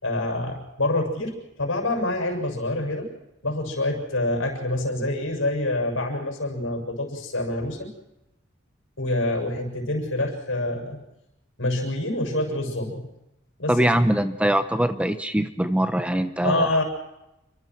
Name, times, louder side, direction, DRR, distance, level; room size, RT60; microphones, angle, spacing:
voice 1, 0.0-3.1 3.4-7.9 9.0-11.0 11.6-13.1 13.6-13.9 16.4-16.8, left 1 dB, 75° left, 3 dB, 7.3 m, -26 dB
voice 2, 13.7-16.8, right 1 dB, 5° right, 9 dB, 0.9 m, -22 dB
29.0 x 24.5 x 4.7 m, 0.89 s
head